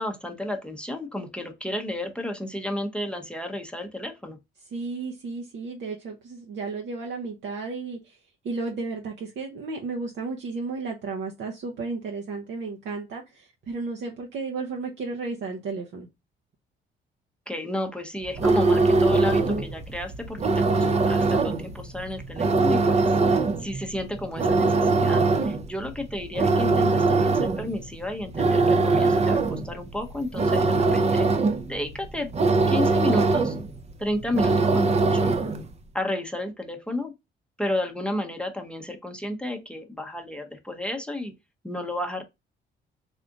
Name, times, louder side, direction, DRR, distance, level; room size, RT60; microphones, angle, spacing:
voice 1, 0.0-4.4 17.5-23.1 23.6-31.3 31.7-32.3 32.7-33.5 34.0-35.3 35.9-37.1 37.6-41.3 41.6-42.2, left 1 dB, 5° left, 0.7 m, -32 dB
voice 2, 4.7-8.2 8.4-16.1, right 4 dB, 65° right, 0.8 m, -33 dB
sound 1, 18.2-35.7, right 3 dB, 35° right, 0.6 m, -22 dB
3.6 x 2.4 x 3.7 m
cardioid pair, 90°, 20 cm